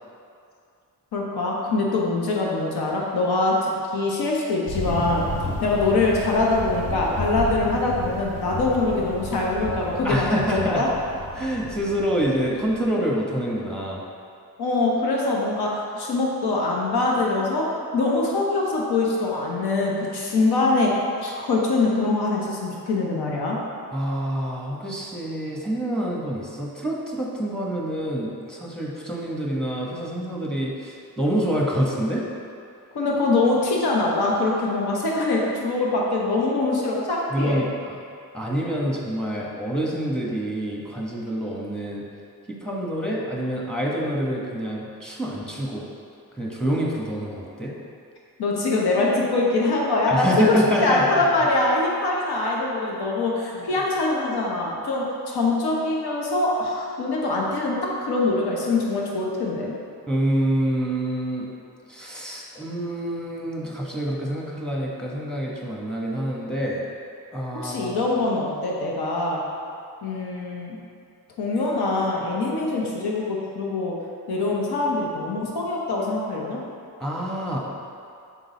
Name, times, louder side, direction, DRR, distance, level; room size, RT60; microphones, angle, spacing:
voice 1, 1.1-5.3 5.6-10.9 14.6-17.7 17.9-23.6 32.9-37.7 48.4-59.7 67.5-69.4 70.0-70.8 71.4-74.0 74.3-76.6, left 2 dB, 80° left, -3 dB, 1.0 m, -23 dB
Thunder, 4.7-12.9, left 1 dB, 55° left, 1.1 m, -33 dB
voice 2, 10.0-10.8 11.3-14.0 23.9-32.2 37.3-38.0 38.3-42.1 42.5-45.9 46.3-47.7 50.1-51.2 53.5-53.7 60.1-61.5 61.9-66.8 67.3-68.0 77.0-77.6, right 1 dB, ahead, -3 dB, 1.3 m, -27 dB
6.1 x 3.9 x 4.1 m, 2.4 s
cardioid pair, 60°, 38 cm